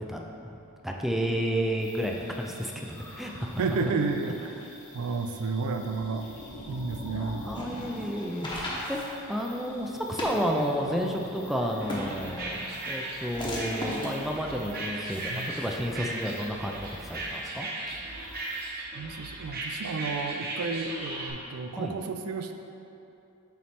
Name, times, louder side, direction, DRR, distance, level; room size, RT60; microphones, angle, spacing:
voice 1, 0.1-0.6 0.8-3.5 4.6-4.7 7.5-12.6 12.9-17.7 21.8-21.9, equal, ahead, 0 dB, 0.3 m, -31 dB
sound 1, 1.8-18.7, left 1 dB, 80° left, 0.9 m, -46 dB
voice 2, 3.6-4.6 4.9-6.3 6.7-7.5 15.3-15.5 18.7-22.5, right 4 dB, 75° right, 6 dB, 0.4 m, -31 dB
sound 2, 7.3-15.7, left 1 dB, 20° left, 0.8 m, -39 dB
sound 3, 11.8-21.3, right 2 dB, 45° right, 0.9 m, -37 dB
7.0 x 3.2 x 4.3 m, 2.8 s
head